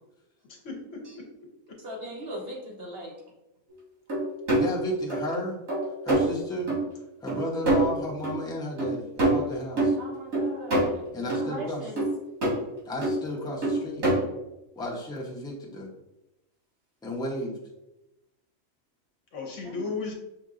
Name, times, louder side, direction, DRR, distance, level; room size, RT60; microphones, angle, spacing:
voice 1, 0.5-1.3 1.7-1.8 19.3-20.1, left 4 dB, 65° left, 2 dB, 1.1 m, -35 dB
voice 2, 1.8-3.1 10.0-12.0 19.6-19.9, equal, 50° right, -2 dB, 1.0 m, -39 dB
sound 1, 4.1-4.7 5.1-5.4 5.7-6.3 6.7-6.8 7.3-7.4 7.7-8.3 8.8-8.9 9.2-9.9 10.3-10.9 11.3-11.5 12.0-12.5 13.0-13.3 13.6-14.1, right 2 dB, 80° right, 2.2 m, -25 dB
voice 3, 4.6-5.6 6.0-6.7 7.2-9.9 11.1-11.9 12.8-14.1 14.8-15.9 17.0-17.6, left 1 dB, 5° left, -3 dB, 0.6 m, -33 dB
5.8 x 2.9 x 2.5 m, 0.93 s
omnidirectional pair, 1.4 m